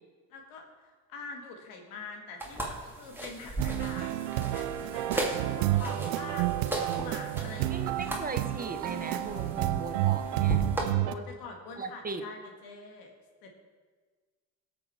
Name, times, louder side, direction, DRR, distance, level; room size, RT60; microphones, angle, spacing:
voice 1, 0.3-7.9 11.0-13.1 13.4-13.5, left 4 dB, 80° left, 3 dB, 2.0 m, -45 dB
sound 1, 2.4-10.9, right 1 dB, 5° right, 2.4 m, -37 dB
sound 2, 3.6-11.1, right 14 dB, 90° right, 0.6 m, -30 dB
voice 2, 7.7-10.7 11.8-12.2, right 3 dB, 25° right, 7 dB, 1.2 m, -38 dB
17.0 x 6.6 x 4.4 m, 1.4 s
supercardioid pair, 75°, 35 cm